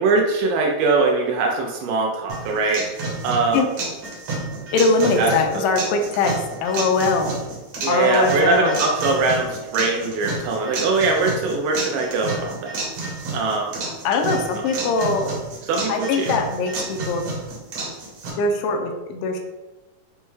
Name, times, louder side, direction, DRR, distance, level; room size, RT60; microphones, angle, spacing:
voice 1, 0.0-2.9 3.2-3.6 5.2-5.3 7.8-12.8 13.3-13.7 15.6-16.3, right 3 dB, 85° right, 0 dB, 2.2 m, -21 dB
sound 1, 2.3-18.3, right 3 dB, 70° right, 2.1 m, -30 dB
voice 2, 4.7-6.3 6.6-7.3 7.9-8.8 14.0-15.3 15.9-17.2 18.4-19.4, left 3 dB, 85° left, 3 dB, 2.1 m, -21 dB
6.2 x 2.2 x 3.1 m, 1.1 s
omnidirectional pair, 3.8 m